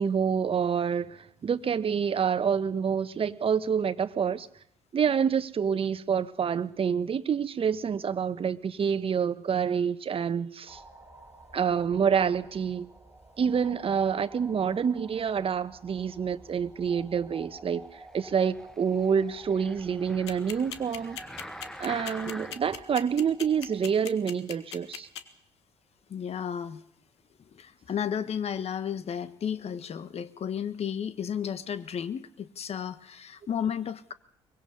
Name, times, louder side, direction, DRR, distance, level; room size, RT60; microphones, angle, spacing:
voice 1, 0.0-4.5 4.9-10.8 11.5-12.9 13.4-21.2 21.8-25.1, right 7 dB, 40° right, 1.3 m, -27 dB
sound 1, 10.7-24.0, right 2 dB, 15° right, 3.4 m, -51 dB
sound 2, 18.2-22.8 23.4-23.5, equal, 5° left, 1.3 m, -45 dB
sound 3, 20.3-25.2, left 10 dB, 85° left, 1.3 m, -38 dB
voice 2, 26.1-26.8 27.5-34.1, left 8 dB, 50° left, 1.5 m, -33 dB
23.0 x 22.5 x 5.5 m
hypercardioid pair, 50°, 14 cm